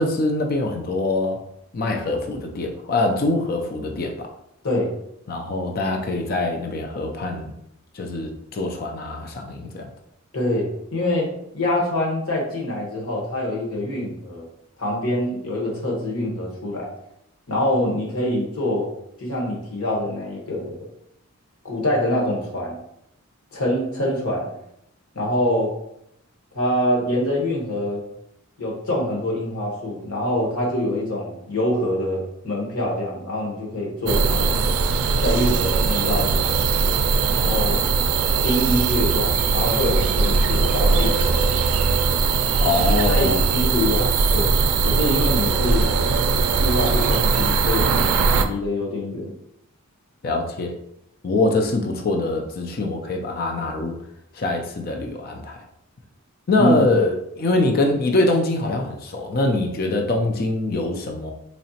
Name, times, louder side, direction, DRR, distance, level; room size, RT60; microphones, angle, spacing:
voice 1, 0.0-1.4 1.7-4.3 5.3-7.5 7.9-9.9 42.6-43.5 50.2-50.7 51.2-54.0 54.3-55.6 56.5-61.3, left 2 dB, 45° left, 3 dB, 0.4 m, -23 dB
voice 2, 10.3-11.3 11.5-14.4 14.8-16.9 17.5-18.9 19.2-20.8 21.6-22.8 23.5-24.5 25.1-25.7 26.5-28.0 28.6-34.5 35.2-36.7 37.3-37.9 38.4-41.3 43.1-44.6 44.9-45.9 46.6-49.3 56.6-56.8, left 1 dB, 85° left, -2 dB, 1.2 m, -25 dB
sound 1, 34.0-48.4, right 4 dB, 85° right, 0.4 m, -20 dB
4.2 x 2.8 x 2.8 m, 0.78 s
head